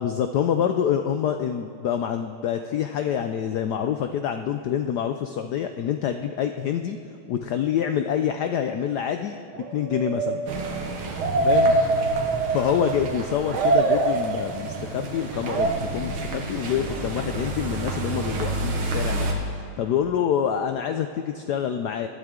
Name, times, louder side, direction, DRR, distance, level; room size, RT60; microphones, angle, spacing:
voice 1, 0.0-7.0 7.3-9.4 9.7-10.4 11.4-12.0 12.5-22.1, left 9 dB, 85° left, 7 dB, 0.9 m, -26 dB
sound 1, 9.5-13.1 13.5-14.8 15.4-15.7, right 2 dB, 55° right, 0.8 m, -23 dB
sound 2, 10.5-19.3, right 2 dB, 85° right, 2.3 m, -31 dB
19.5 x 12.0 x 3.7 m, 2.7 s
omnidirectional pair, 2.4 m